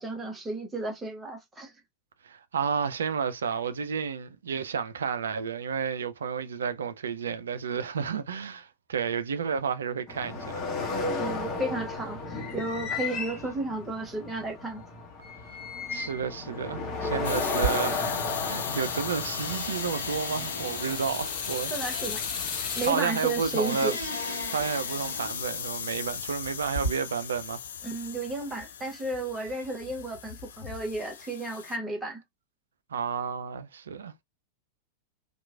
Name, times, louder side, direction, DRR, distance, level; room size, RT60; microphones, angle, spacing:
voice 1, 0.0-1.7 11.2-14.9 21.7-22.2 22.8-24.0 27.8-32.2, right 2 dB, 15° right, 0.9 m, -33 dB
voice 2, 2.2-10.7 15.9-22.0 22.8-23.9 24.5-27.6 32.9-34.1, right 6 dB, 70° right, 0.4 m, -31 dB
sound 1, 10.1-22.9, left 3 dB, 30° left, 1.0 m, -34 dB
sound 2, 17.2-31.8, left 8 dB, 65° left, 0.3 m, -37 dB
sound 3, 17.5-18.4 18.7-25.5 26.3-26.9, right 1 dB, 85° left, 1.0 m, -37 dB
2.9 x 2.3 x 2.2 m
figure-of-eight pair, 90°, 0 cm